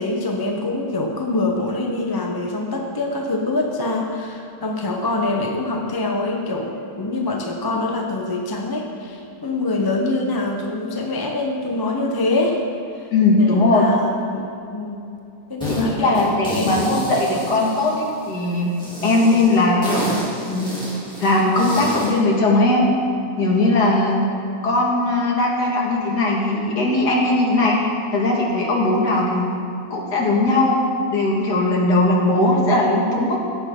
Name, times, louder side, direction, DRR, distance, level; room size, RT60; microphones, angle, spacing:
voice 1, 0.0-12.6 12.9-13.1 13.4-15.0 15.5-16.9, left 2 dB, 25° left, 1 dB, 0.5 m, -25 dB
voice 2, 13.1-13.9 15.7-18.7 19.0-20.8 21.2-22.9 23.4-24.3 24.6-27.8 28.1-29.5 29.9-30.8 31.1-33.4, left 2 dB, 80° left, -2 dB, 2.3 m, -19 dB
sound 1, 15.6-15.8 16.1-18.3 18.8-22.2, equal, 5° left, 2.7 m, -30 dB
17.0 x 7.8 x 3.7 m, 2.6 s
omnidirectional pair, 1.7 m